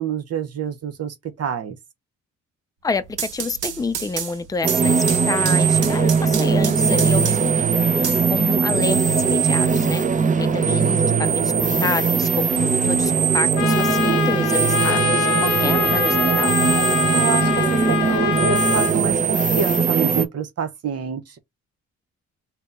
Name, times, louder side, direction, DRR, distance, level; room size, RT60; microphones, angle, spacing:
voice 1, 0.0-1.8 17.1-21.4, right 7 dB, 55° right, 0.8 m, -27 dB
voice 2, 2.8-16.5, left 4 dB, 10° left, 0.5 m, -28 dB
sound 1, 2.9-7.6 8.0-9.0, right 8 dB, 90° right, 1.3 m, -31 dB
sound 2, 4.6-20.2, right 5 dB, 25° right, 0.7 m, -20 dB
Trumpet, 13.6-18.9, left 10 dB, 85° left, 0.7 m, -24 dB
3.5 x 2.9 x 3.7 m
cardioid pair, 90°, 30 cm